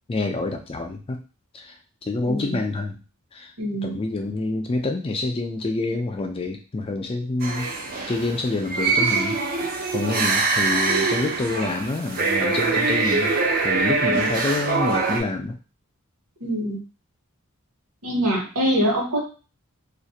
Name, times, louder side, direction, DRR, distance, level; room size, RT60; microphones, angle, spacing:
voice 1, 0.1-1.2 1.5-1.8 2.0-3.0 3.3-3.5 3.8-7.7 8.1-9.4 9.9-13.3 13.6-15.6, left 2 dB, 25° left, 4 dB, 0.4 m, -27 dB
voice 2, 2.2-2.6 3.6-4.0 14.0-14.2 16.4-16.8 18.0-19.2, equal, 80° right, -3 dB, 1.0 m, -24 dB
sound 1, 7.4-15.2, right 4 dB, 40° right, 0.5 m, -23 dB
2.4 x 2.1 x 2.7 m, 0.34 s
head